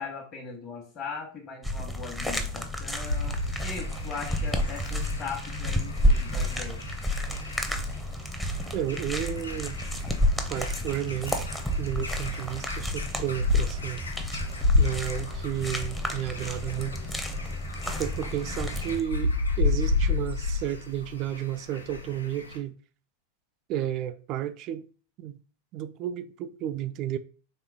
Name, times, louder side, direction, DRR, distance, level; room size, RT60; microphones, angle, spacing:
voice 1, 0.0-3.3 3.6-6.8, left 5 dB, 35° left, 1.2 m, -39 dB
sound 1, 1.6-19.0, equal, 5° left, 0.7 m, -30 dB
sound 2, 3.0-22.6, left 3 dB, 75° left, 0.6 m, -32 dB
voice 2, 8.7-9.8 10.5-11.5 11.8-14.0 14.8-17.0 18.0-22.8 23.7-24.9 25.2-25.4 25.7-27.2, right 11 dB, 40° right, 0.3 m, -32 dB
4.4 x 3.3 x 3.6 m
figure-of-eight pair, 90°, 0 cm